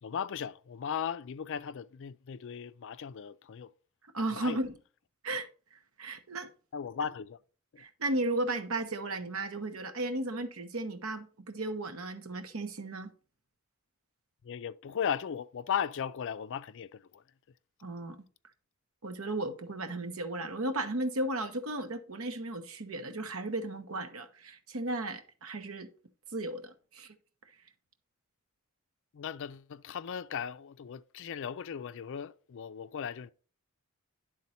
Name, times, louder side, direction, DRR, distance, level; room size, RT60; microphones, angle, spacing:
voice 1, 0.0-3.7 4.3-4.6 6.7-7.4 7.7-7.8 14.4-17.2 29.1-33.3, left 7 dB, 60° left, 0.4 m, -37 dB
voice 2, 4.1-4.8 5.2-5.5 6.0-6.5 7.8-13.1 17.8-18.2 19.0-25.9 26.3-27.1, right 2 dB, 70° right, 0.9 m, -35 dB
10.5 x 3.8 x 4.2 m
head